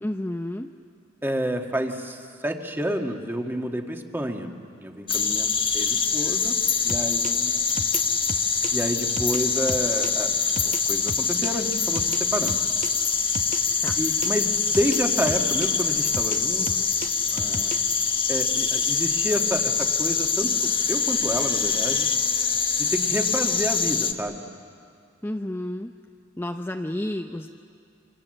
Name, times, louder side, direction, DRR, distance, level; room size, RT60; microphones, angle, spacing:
voice 1, 0.0-0.7 13.8-14.0 25.2-25.9 26.4-27.5, left 1 dB, 10° left, 4 dB, 0.7 m, -30 dB
voice 2, 1.2-4.5 4.8-6.6 6.8-7.7 8.7-12.6 14.0-16.9 17.3-17.8 18.3-22.1 22.8-24.4, equal, 10° right, 3 dB, 1.7 m, -29 dB
sound 1, 5.1-24.1, left 5 dB, 25° left, 1.3 m, -24 dB
sound 2, 6.9-11.5 12.0-15.0 15.3-18.0, right 2 dB, 40° right, 1.0 m, -34 dB
Bowed string instrument, 18.8-24.1, equal, 60° left, 3.1 m, -47 dB
28.5 x 26.0 x 7.8 m, 2.4 s
head